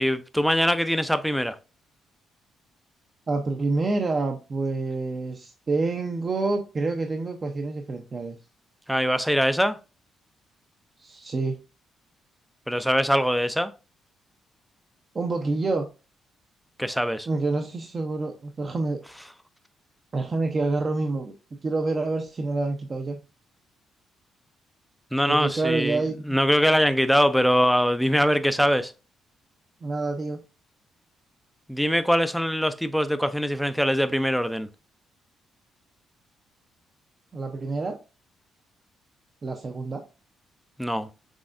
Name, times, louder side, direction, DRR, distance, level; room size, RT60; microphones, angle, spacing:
voice 1, 0.0-1.6 8.9-9.8 12.7-13.7 16.8-17.3 25.1-28.9 31.7-34.7 40.8-41.1, equal, ahead, 0.5 m, -23 dB
voice 2, 3.3-8.4 11.0-11.6 15.1-15.9 17.3-19.0 20.1-21.3 21.6-23.2 25.3-26.2 29.8-30.4 37.3-38.0 39.4-40.0, right 3 dB, 35° right, 0.7 m, -27 dB
6.2 x 3.3 x 2.5 m
cardioid pair, 90°, 0 cm